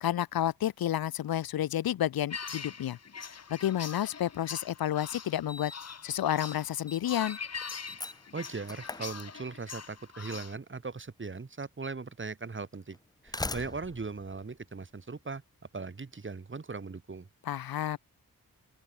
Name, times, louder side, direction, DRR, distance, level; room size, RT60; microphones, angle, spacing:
voice 1, 0.0-3.0 3.5-5.7 6.0-7.4 17.4-18.0, left 11 dB, 75° left, 0.5 m, -30 dB
sound 1, 2.3-10.5, left 6 dB, 45° left, 1.2 m, -43 dB
Slam, 4.7-4.8 5.5-6.0 6.2-6.6 6.9-9.8 10.9-11.0 11.9-12.0 12.9-15.3, left 2 dB, 10° left, 0.6 m, -42 dB
voice 2, 8.3-13.0 13.2-15.4 15.7-17.3, right 4 dB, 35° right, 1.8 m, -39 dB
open air
wide cardioid pair, 120°, 36 cm